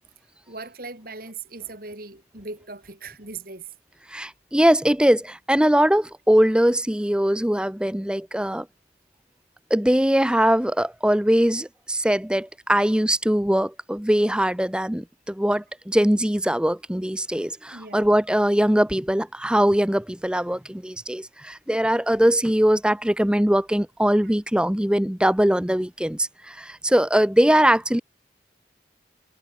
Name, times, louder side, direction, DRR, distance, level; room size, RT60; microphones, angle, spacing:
voice 1, 0.5-3.7 17.7-18.1 24.2-24.3, right 3 dB, 50° right, 4.3 m, -39 dB
voice 2, 4.1-8.7 9.7-28.0, equal, 5° right, 0.7 m, -21 dB
head